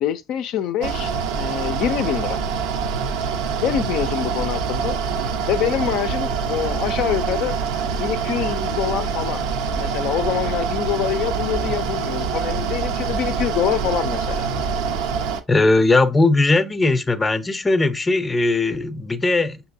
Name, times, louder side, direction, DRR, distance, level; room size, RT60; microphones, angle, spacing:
voice 1, 0.0-2.4 3.6-5.0 5.5-7.5 8.0-9.4 9.7-14.5, left 10 dB, 65° left, 0.4 m, -25 dB
Mechanical fan, 0.8-15.4, right 5 dB, 75° right, 0.6 m, -25 dB
voice 2, 15.5-19.6, left 2 dB, 20° left, 0.6 m, -19 dB
5.8 x 2.8 x 2.7 m
hypercardioid pair, 75°, 0 cm